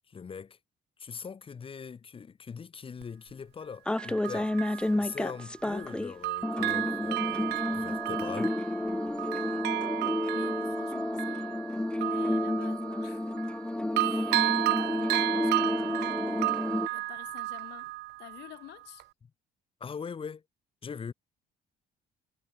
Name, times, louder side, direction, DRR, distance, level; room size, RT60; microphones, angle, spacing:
voice 1, 0.1-0.6 1.0-8.6 19.2-19.3 19.8-20.4 20.8-21.1, left 6 dB, 30° left, 2.4 m, -41 dB
Bell, 3.0-3.1 4.0-5.9 6.2-13.7 14.0-18.6 19.0-19.1, right 19 dB, 80° right, 0.6 m, -33 dB
sound 1, 3.9-6.1 6.4-16.9, left 1 dB, 5° left, 0.5 m, -31 dB
voice 2, 10.3-13.5 14.0-16.5 16.9-17.9 18.2-19.0, left 18 dB, 85° left, 6.2 m, -49 dB
cardioid pair, 110°, 17 cm